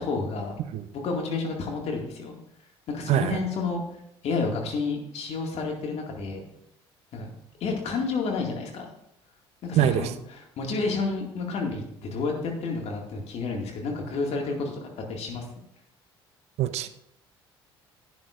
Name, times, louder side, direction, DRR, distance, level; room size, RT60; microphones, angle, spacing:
voice 1, 0.0-0.6 0.9-2.4 2.9-3.8 4.2-6.4 7.1-7.3 7.6-8.9 9.6-15.5, left 4 dB, 55° left, 1 dB, 2.1 m, -30 dB
voice 2, 9.8-10.1 16.6-16.9, right 11 dB, 55° right, 12 dB, 0.7 m, -23 dB
11.0 x 9.4 x 2.5 m, 0.79 s
hypercardioid pair, 55°, 13 cm